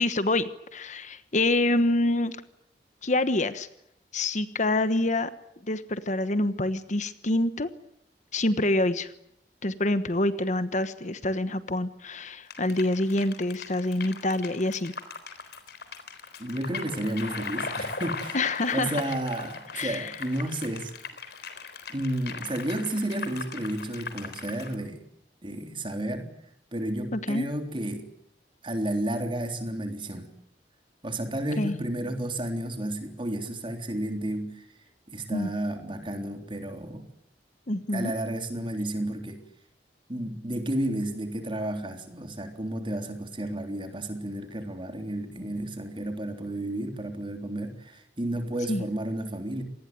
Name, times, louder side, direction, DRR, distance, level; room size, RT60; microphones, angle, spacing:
voice 1, 0.0-2.3 3.0-3.7 4.1-5.3 5.7-7.7 8.3-9.1 9.6-14.9 18.3-19.0 19.7-20.1 27.1-27.5 31.6-31.7 35.3-35.5 37.7-38.1 48.7-48.8, left 2 dB, 45° left, 12 dB, 1.2 m, -26 dB
sound 1, 12.5-24.8, left 4 dB, 65° left, 3.8 m, -39 dB
voice 2, 16.4-20.9 21.9-25.0 25.4-26.3 26.7-28.1 28.6-30.3 31.0-34.6 35.1-37.0 37.9-39.4 40.1-49.6, right 1 dB, 30° right, 5 dB, 3.6 m, -32 dB
27.0 x 19.5 x 9.4 m, 0.75 s
head